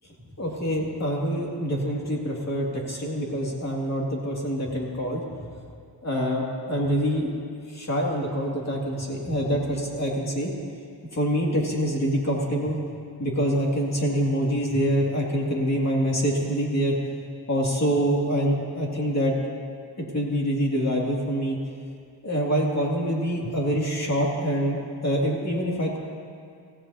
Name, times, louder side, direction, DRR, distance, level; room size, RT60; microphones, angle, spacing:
voice 1, 0.4-5.2 6.0-7.3 7.7-10.5 11.1-12.8 13.2-16.9 17.5-19.3 20.0-21.6 22.2-26.0, equal, 35° left, -2 dB, 2.5 m, -25 dB
24.5 x 16.0 x 2.8 m, 2.3 s
wide cardioid pair, 130°, 44 cm